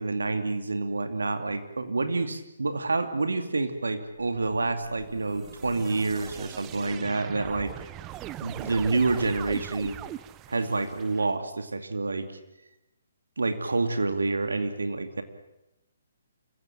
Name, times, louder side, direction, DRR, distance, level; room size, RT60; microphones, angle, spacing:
voice 1, 0.0-7.7 8.4-10.0 10.5-12.3 13.4-15.2, right 3 dB, 80° right, 8 dB, 2.5 m, -28 dB
sound 1, 4.7-11.3, right 13 dB, 20° right, 0.8 m, -41 dB
27.5 x 15.5 x 8.7 m, 0.92 s
figure-of-eight pair, 135°, 0 cm